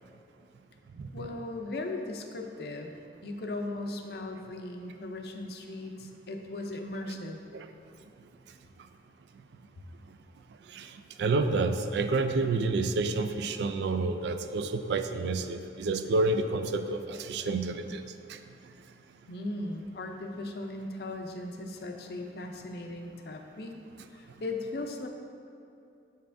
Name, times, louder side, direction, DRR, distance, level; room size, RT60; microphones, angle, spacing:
voice 1, 1.1-2.9 3.2-7.4 9.8-9.9 19.3-23.7 24.1-25.1, left 2 dB, 60° left, 4 dB, 0.5 m, -38 dB
voice 2, 11.2-18.0 18.3-18.4, right 3 dB, 75° right, 8 dB, 0.3 m, -29 dB
7.2 x 5.4 x 2.6 m, 2.6 s
head